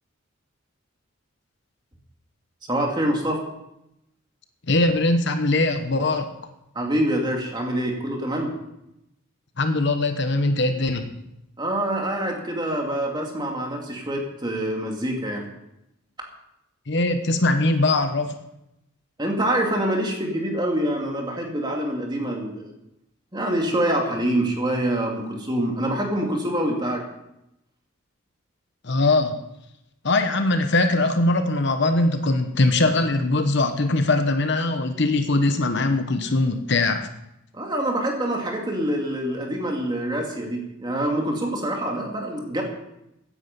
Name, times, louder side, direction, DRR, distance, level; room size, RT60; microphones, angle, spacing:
voice 1, 2.7-3.4 6.7-8.5 11.6-15.4 19.2-22.7 23.3-27.0 37.5-42.6, right 1 dB, 20° right, 1 dB, 2.5 m, -25 dB
voice 2, 4.7-6.3 9.6-11.1 16.9-18.4 28.8-29.4 30.0-37.1, left 2 dB, 55° left, 7 dB, 1.0 m, -21 dB
16.0 x 9.9 x 5.4 m, 0.85 s
head